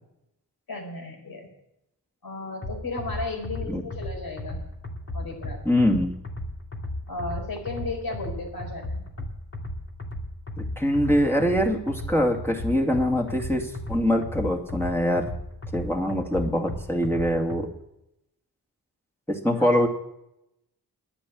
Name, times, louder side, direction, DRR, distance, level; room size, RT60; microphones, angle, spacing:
voice 1, 0.7-1.5 2.2-4.6 5.1-5.6 7.1-9.0 19.5-19.9, left 2 dB, 60° left, 2 dB, 4.5 m, -34 dB
sound 1, 2.6-17.6, left 1 dB, 35° left, 2.4 m, -35 dB
voice 2, 5.6-6.1 10.6-15.3 15.7-17.7 19.3-19.9, equal, 5° left, 0 dB, 2.4 m, -23 dB
10.0 x 10.0 x 8.5 m, 0.83 s
cardioid pair, 65°, 40 cm